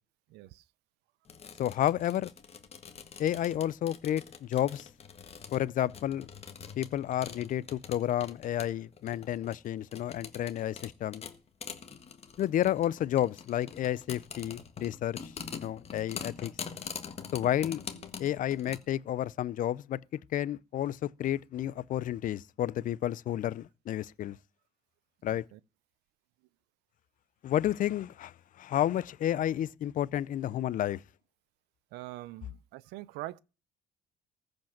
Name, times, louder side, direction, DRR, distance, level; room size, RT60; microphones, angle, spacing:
voice 1, 0.3-0.6 25.3-25.6 31.9-33.4, right 17 dB, 90° right, 0.5 m, -43 dB
sound 1, 1.2-18.8, left 6 dB, 35° left, 1.6 m, -45 dB
voice 2, 1.6-2.3 3.2-4.9 5.5-6.3 6.8-11.2 12.4-16.5 17.3-17.8 18.2-20.0 20.3-24.4 25.2-25.4 27.4-31.0, left 12 dB, 50° left, 0.5 m, -31 dB
14.5 x 5.2 x 7.2 m
cardioid pair, 110°, 17 cm